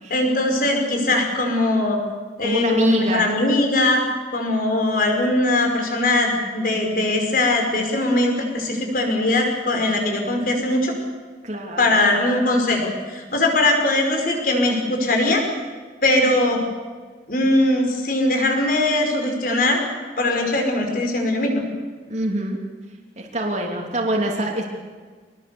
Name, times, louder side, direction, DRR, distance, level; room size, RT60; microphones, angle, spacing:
voice 1, 0.1-2.0 2.4-4.0 4.3-10.9 11.8-15.4 16.0-16.6 17.3-19.8 20.2-21.6, left 2 dB, 50° left, 2 dB, 5.4 m, -20 dB
voice 2, 2.4-3.3 11.4-12.1 22.1-22.6 23.2-24.6, right 1 dB, 40° right, 0 dB, 2.9 m, -25 dB
25.0 x 20.0 x 7.1 m, 1.5 s
head